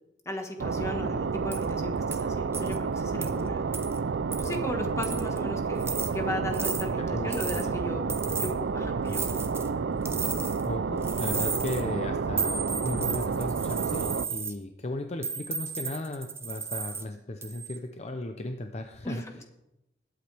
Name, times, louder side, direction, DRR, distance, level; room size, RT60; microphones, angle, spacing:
voice 1, 0.2-3.6 4.4-8.1 8.4-9.4 19.0-19.4, left 1 dB, 15° left, 3 dB, 1.5 m, -36 dB
sound 1, 0.6-14.3, right 5 dB, 70° right, 0.4 m, -30 dB
sound 2, 1.5-1.6 2.1-2.2 2.5-2.8 3.2-3.3 3.7-4.0 4.3-4.6 5.0-5.4 5.8-6.1 6.5-6.8 7.3-7.7 8.1-8.5 9.1-9.7 10.0-10.7 11.0-11.8 12.4-14.5 15.2-17.0 17.4-17.8, right 5 dB, 15° right, 0.8 m, -34 dB
voice 2, 7.0-7.8 8.3-8.4 10.7-19.2, left 1 dB, 35° left, 5 dB, 0.7 m, -36 dB
20.5 x 8.3 x 3.4 m, 0.90 s
head